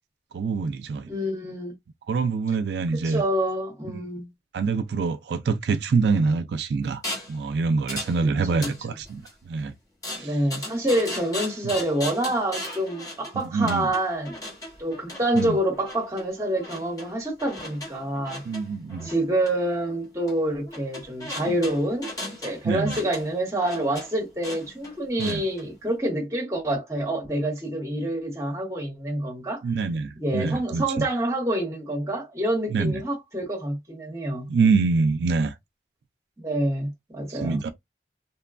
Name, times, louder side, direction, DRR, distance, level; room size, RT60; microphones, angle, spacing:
voice 1, 0.3-1.1 2.1-3.2 4.5-7.0 7.3-9.7 10.2-10.4 13.3-13.9 15.3-15.6 18.5-19.1 21.5-21.6 22.6-23.0 25.2-25.4 29.6-31.1 32.7-33.0 34.5-35.5 37.3-37.7, right 4 dB, 75° right, 0.3 m, -25 dB
voice 2, 1.1-1.8 2.9-4.3 8.2-8.7 10.2-14.5 14.8-18.4 19.0-22.1 22.4-29.6 30.2-34.5 36.4-37.6, right 1 dB, 15° right, 1.0 m, -27 dB
sound 1, 7.0-7.4 7.9-8.2 8.5-9.3 10.0-25.6, left 1 dB, 20° left, 0.9 m, -37 dB
3.0 x 2.2 x 2.4 m
head